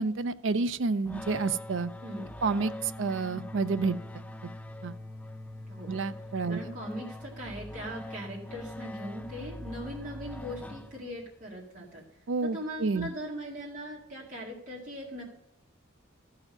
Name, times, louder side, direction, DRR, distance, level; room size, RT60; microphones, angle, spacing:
voice 1, 0.0-1.9 2.4-4.2 4.8-5.0 5.9-6.6 12.3-13.1, right 4 dB, 65° right, 13 dB, 0.5 m, -29 dB
sound 1, 1.1-11.3, left 1 dB, 5° left, 0.3 m, -42 dB
voice 2, 2.0-2.3 5.7-5.9 6.5-12.0 12.4-15.2, equal, 40° right, -5 dB, 2.2 m, -40 dB
14.0 x 4.9 x 6.6 m, 0.85 s
head